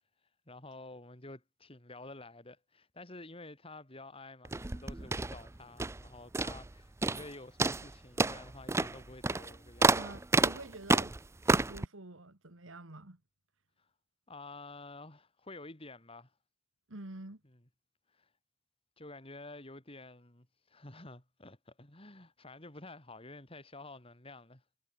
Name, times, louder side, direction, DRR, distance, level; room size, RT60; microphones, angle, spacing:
voice 1, 0.5-10.2 13.8-13.9 14.3-16.3 18.1-18.3 19.0-24.6, left 2 dB, 30° left, 3.7 m, -50 dB
sound 1, 4.4-6.1 6.3-6.7 7.0-7.3 7.6-11.9, right 3 dB, 15° right, 0.5 m, -30 dB
voice 2, 9.9-11.1 11.5-13.2 16.9-17.4, right 2 dB, 85° right, 2.4 m, -47 dB
head